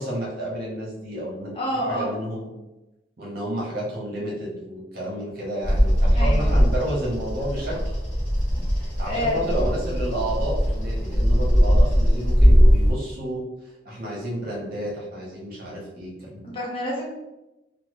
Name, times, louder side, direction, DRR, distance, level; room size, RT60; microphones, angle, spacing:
voice 1, 0.0-1.5 1.9-2.5 3.2-7.8 9.0-13.4 13.8-16.5, right 1 dB, 55° right, -4 dB, 1.1 m, -30 dB
voice 2, 1.5-2.1 6.1-6.5 8.8-9.5 13.9-14.0 16.4-17.1, equal, 30° left, -4 dB, 0.9 m, -28 dB
Bird vocalization bird call bird song, 5.6-12.9, equal, 5° left, 1.4 m, -20 dB
3.2 x 2.4 x 3.1 m, 1.0 s
head